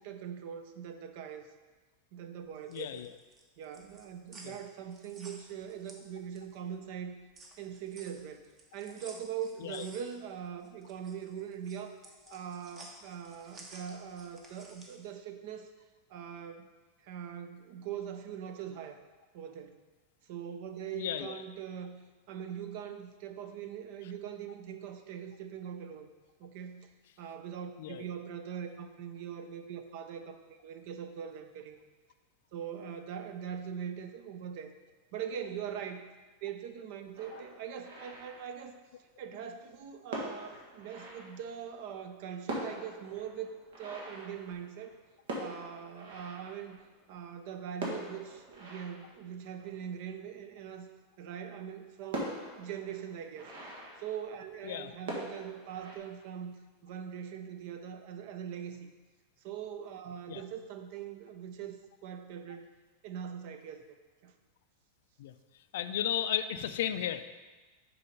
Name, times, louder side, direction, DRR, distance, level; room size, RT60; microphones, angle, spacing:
voice 1, 0.0-1.5 2.1-3.0 3.6-7.1 7.6-8.4 8.7-12.0 12.3-15.7 16.1-16.7 17.0-19.0 19.3-19.8 20.2-22.0 22.3-26.1 26.4-26.9 27.2-31.8 32.5-34.7 35.1-36.1 36.4-38.8 39.2-43.5 43.8-44.9 45.4-46.8 47.1-50.9 51.2-53.5 54.0-56.5 56.8-58.9 59.4-62.7 63.0-64.0 64.2-64.3, right 8 dB, 55° right, 8 dB, 0.6 m, -42 dB
sound 1, 2.5-6.6 7.0-15.1, right 2 dB, 25° right, 0.9 m, -54 dB
voice 2, 2.7-3.1 4.4-4.5 9.6-9.8 20.9-21.4 27.8-28.1 37.3-37.4 54.6-54.9 60.3-60.4 65.2-65.3 65.7-67.2, left 10 dB, 75° left, 11 dB, 0.4 m, -34 dB
sound 2, 37.1-39.0 39.7-39.8 40.1-41.8 42.2-42.3 42.4-47.2 47.7-50.4 50.9-51.0 51.4-51.5 52.1-54.7 55.0-56.0, right 1 dB, 80° right, 1.8 m, -43 dB
6.8 x 4.1 x 5.3 m, 1.3 s
supercardioid pair, 155°, 0 cm